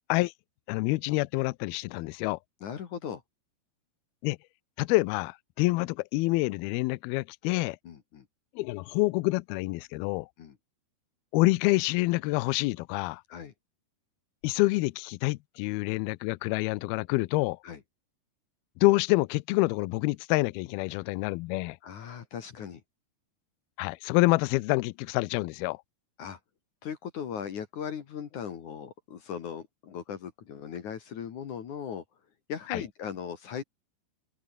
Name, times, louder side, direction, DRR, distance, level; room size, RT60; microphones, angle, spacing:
voice 1, 0.7-2.4 4.2-4.4 4.8-7.8 8.6-10.3 11.3-13.2 14.4-17.6 18.8-21.8 23.8-25.8 32.7-32.8, left 22 dB, 85° left, 2.2 m, -27 dB
voice 2, 2.6-3.2 7.8-8.2 10.4-10.6 13.3-13.5 17.6-17.8 21.8-22.8 26.2-26.4 26.8-32.0 32.5-33.6, left 8 dB, 55° left, 2.8 m, -38 dB
open air
omnidirectional pair, 5.1 m